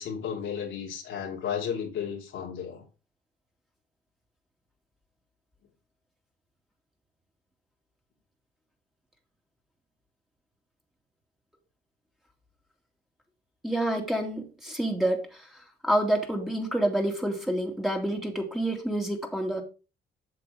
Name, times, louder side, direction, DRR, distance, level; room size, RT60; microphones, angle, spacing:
voice 1, 0.0-2.8, left 8 dB, 80° left, 2.6 m, -33 dB
voice 2, 13.6-15.5 15.8-19.6, right 1 dB, ahead, 2.4 m, -28 dB
7.9 x 6.8 x 3.7 m
cardioid pair, 90°, 20 cm